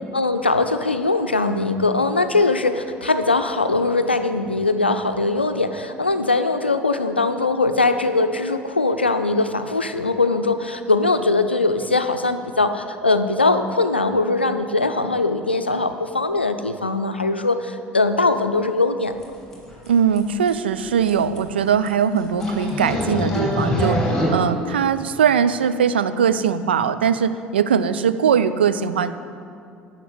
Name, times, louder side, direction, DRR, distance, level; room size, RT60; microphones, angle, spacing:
voice 1, 0.1-19.1, left 3 dB, 90° left, 9 dB, 0.5 m, -21 dB
sound 1, 19.2-19.3 19.5-19.9 20.2-20.3 20.5-20.6 20.8-20.9 21.1-21.4 21.9-22.0 22.4-24.3, left 1 dB, 5° left, 3.0 m, -23 dB
voice 2, 19.9-24.0 24.3-29.1, right 7 dB, 75° right, 12 dB, 0.4 m, -20 dB
11.0 x 5.9 x 8.1 m, 2.4 s
figure-of-eight pair, 60°, 6 cm